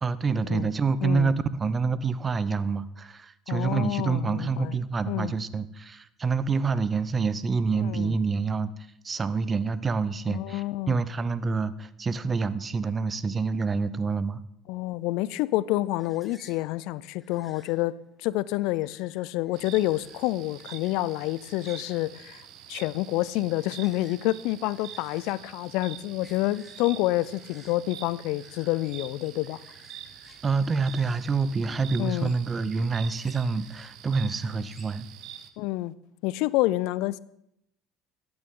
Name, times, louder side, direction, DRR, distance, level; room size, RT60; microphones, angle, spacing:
voice 1, 0.0-8.7 9.0-14.4 30.4-35.1, right 4 dB, 30° right, 0.6 m, -27 dB
voice 2, 1.0-1.4 3.5-4.8 5.1-5.3 7.8-8.2 10.3-10.9 14.7-29.6 32.0-32.3 35.6-35.9 36.2-37.2, left 17 dB, 70° left, 0.3 m, -28 dB
sound 1, 16.0-34.9, left 3 dB, 25° left, 2.0 m, -59 dB
sound 2, 19.5-35.5, right 11 dB, 65° right, 0.8 m, -46 dB
13.5 x 9.6 x 3.7 m
hypercardioid pair, 70°, 0 cm